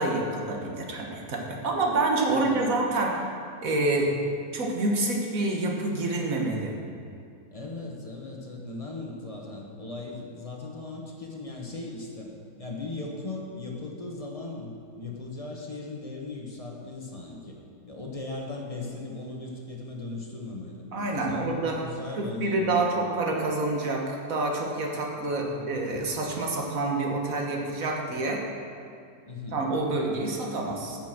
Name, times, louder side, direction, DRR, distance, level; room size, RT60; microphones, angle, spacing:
voice 1, 0.0-3.3 3.6-4.1 4.5-6.7 20.9-21.8 22.2-28.4 29.5-31.0, right 2 dB, 60° right, 0 dB, 1.7 m, -27 dB
voice 2, 2.3-2.6 4.1-4.2 7.5-12.3 12.6-17.6 17.8-20.9 21.3-23.0 25.4-25.7 29.3-29.6, left 3 dB, 25° left, -1 dB, 1.2 m, -38 dB
10.0 x 6.0 x 7.4 m, 2.4 s
omnidirectional pair, 1.7 m